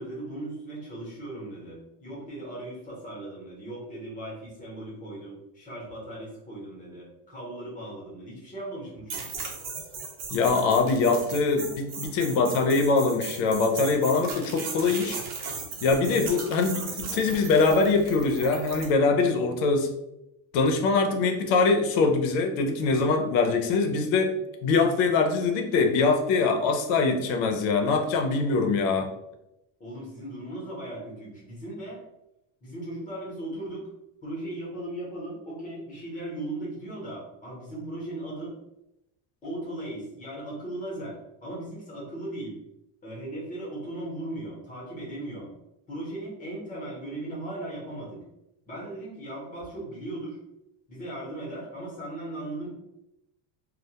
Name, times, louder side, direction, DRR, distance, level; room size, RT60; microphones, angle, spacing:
voice 1, 0.0-9.3 29.8-32.0 32.6-33.9 34.2-38.5 39.4-42.6 43.0-45.5 45.9-48.2 48.7-50.4 50.9-52.7, right 1 dB, 20° left, -5 dB, 0.7 m, -37 dB
sound 1, 9.1-18.9, right 4 dB, 60° right, 0.8 m, -37 dB
voice 2, 10.3-15.2 15.8-19.9 20.5-24.3 24.6-29.1, left 4 dB, 85° left, 4 dB, 0.6 m, -23 dB
2.1 x 2.1 x 2.8 m, 0.88 s
cardioid pair, 170°, 46 cm